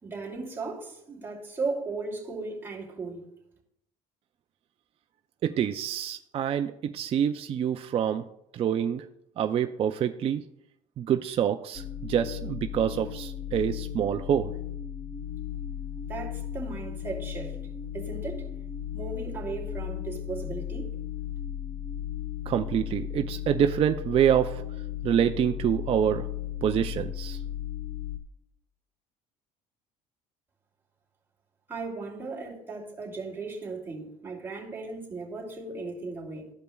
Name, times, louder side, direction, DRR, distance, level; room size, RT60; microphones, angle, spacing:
voice 1, 0.0-3.3 16.1-17.6 17.9-18.5 18.9-21.0 31.7-36.5, right 3 dB, 15° right, -5 dB, 2.7 m, -36 dB
voice 2, 5.4-8.2 8.5-9.0 9.4-10.4 11.0-14.5 22.5-24.6 25.0-26.3 26.6-27.4, right 9 dB, 40° right, 6 dB, 0.4 m, -26 dB
sound 1, 11.7-28.2, left 10 dB, 40° left, 1.0 m, -36 dB
14.0 x 5.1 x 2.3 m, 0.79 s
cardioid pair, 110°, 15 cm